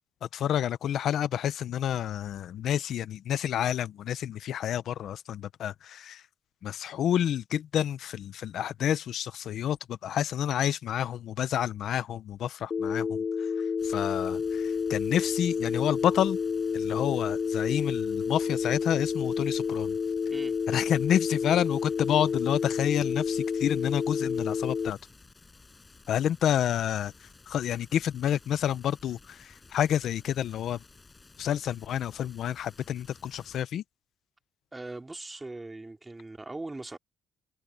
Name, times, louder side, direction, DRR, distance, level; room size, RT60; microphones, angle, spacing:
voice 1, 0.2-6.2 6.6-13.5 13.8-16.4 16.7-19.9 20.7-25.0 26.1-27.1 27.5-30.8 31.4-33.8, left 10 dB, 70° left, 0.7 m, -29 dB
Telephone, 12.7-24.9, left 6 dB, 45° left, 0.9 m, -30 dB
sound 1, 13.8-33.6, left 3 dB, 25° left, 6.3 m, -55 dB
voice 2, 34.7-37.0, right 2 dB, 20° right, 2.9 m, -40 dB
cardioid pair, 90°, 0 cm